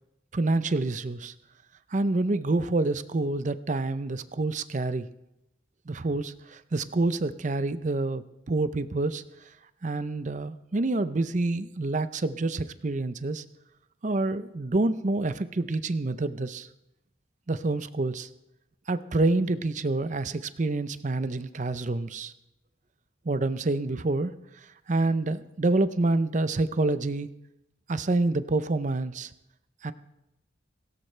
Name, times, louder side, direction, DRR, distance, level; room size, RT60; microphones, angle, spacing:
voice 1, 0.3-1.3 1.9-5.1 5.9-9.2 9.8-13.4 14.0-16.7 17.5-18.3 18.9-22.3 23.2-24.3 24.9-27.3 27.9-29.3 29.8-29.9, right 2 dB, 40° right, 13 dB, 0.6 m, -27 dB
17.5 x 17.0 x 3.3 m, 0.87 s
head